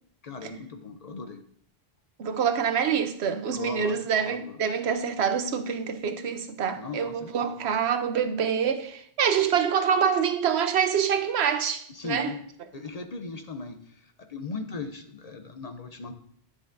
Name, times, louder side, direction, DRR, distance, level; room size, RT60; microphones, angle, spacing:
voice 1, 0.2-1.4 3.5-4.0 4.3-4.6 6.8-7.6 11.9-12.4 12.7-16.1, left 4 dB, 45° left, 0.6 m, -38 dB
voice 2, 2.2-12.3, right 7 dB, 85° right, 1.0 m, -26 dB
10.5 x 6.1 x 2.6 m
omnidirectional pair, 1.1 m